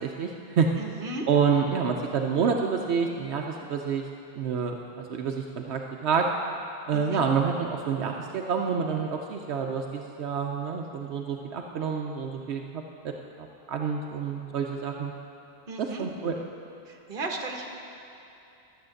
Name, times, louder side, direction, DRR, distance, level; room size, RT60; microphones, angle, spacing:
voice 1, 0.0-0.7 1.3-4.1 4.4-6.3 6.9-15.1 15.8-16.3, right 6 dB, 80° right, 2 dB, 1.0 m, -28 dB
voice 2, 0.8-1.3 6.9-7.2 15.7-16.0 16.8-17.7, right 2 dB, 55° right, 2 dB, 1.3 m, -35 dB
12.0 x 7.1 x 7.7 m, 2.8 s
omnidirectional pair, 1.1 m